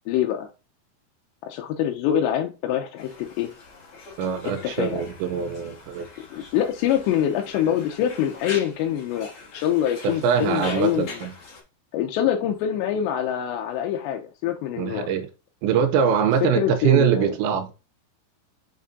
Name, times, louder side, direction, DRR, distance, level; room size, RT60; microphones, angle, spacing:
voice 1, 0.1-0.5 1.4-3.5 4.6-5.0 6.3-11.2 11.9-15.1 16.4-17.3, left 10 dB, 85° left, 2.7 m, -25 dB
Conversation, 3.0-11.6, left 3 dB, 65° left, 1.4 m, -42 dB
voice 2, 4.2-6.1 10.0-11.3 14.8-15.3 15.6-17.7, right 7 dB, 80° right, 2.7 m, -23 dB
6.5 x 5.9 x 2.6 m
omnidirectional pair, 5.5 m